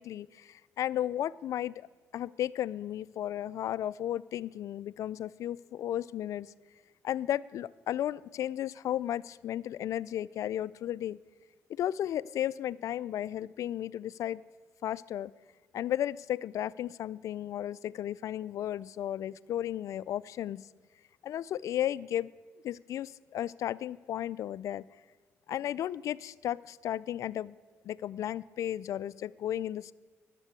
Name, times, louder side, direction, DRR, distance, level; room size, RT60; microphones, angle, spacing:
voice 1, 0.0-1.9 2.1-6.5 7.0-11.2 11.7-14.4 14.8-15.3 15.7-20.6 21.2-22.3 22.6-24.9 25.5-27.6 27.8-29.9, left 11 dB, 70° left, 18 dB, 0.3 m, -34 dB
11.0 x 7.6 x 8.4 m, 1.3 s
cardioid pair, 75°, 6 cm